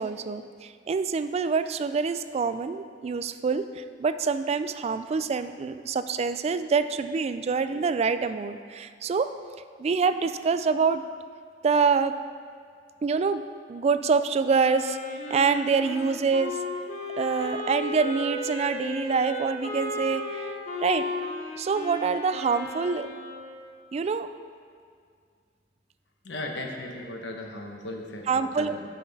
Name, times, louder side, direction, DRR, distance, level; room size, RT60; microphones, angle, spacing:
voice 1, 0.0-9.3 9.8-11.0 11.6-12.2 13.0-13.4 13.7-15.0 15.3-16.6 17.2-20.5 20.8-21.1 21.6-23.1 23.9-24.3 28.3-28.7, right 5 dB, 35° right, 11 dB, 0.3 m, -26 dB
Wind instrument woodwind instrument, 14.6-23.5, left 1 dB, 45° left, 1.2 m, -34 dB
voice 2, 26.2-28.8, left 1 dB, 85° left, 2 dB, 1.0 m, -37 dB
10.0 x 5.8 x 4.1 m, 2.1 s
head